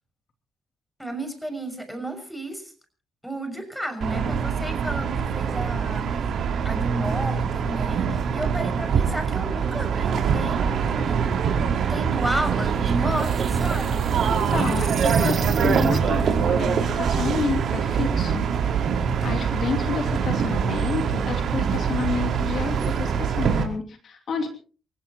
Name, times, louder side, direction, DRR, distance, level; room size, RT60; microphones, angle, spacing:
voice 1, 1.0-2.7 3.2-6.1 6.6-11.2 11.9-14.5, right 1 dB, ahead, 7 dB, 6.2 m, -33 dB
sound 1, 4.0-23.6, right 6 dB, 65° right, 4.9 m, -24 dB
sound 2, 12.8-16.3, right 5 dB, 45° right, 1.3 m, -32 dB
voice 2, 14.0-18.5 18.8-24.5, left 5 dB, 60° left, 4 dB, 3.0 m, -30 dB
29.0 x 16.0 x 3.0 m, 0.39 s
cardioid pair, 90°, 0 cm